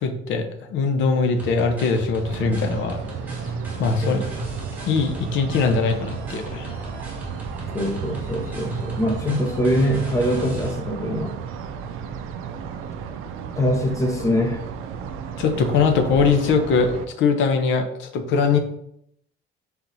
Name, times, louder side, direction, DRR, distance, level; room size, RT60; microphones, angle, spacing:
voice 1, 0.0-3.0 3.8-4.3 4.8-6.7 15.4-18.6, left 5 dB, 65° left, 6 dB, 0.7 m, -21 dB
sound 1, 1.4-10.7, right 3 dB, 10° right, 1.1 m, -35 dB
sound 2, 2.2-17.1, right 6 dB, 85° right, 0.4 m, -34 dB
voice 2, 7.7-11.4 13.6-14.6, equal, 15° left, 3 dB, 0.6 m, -23 dB
4.5 x 4.1 x 2.6 m, 0.74 s
cardioid pair, 180°, 21 cm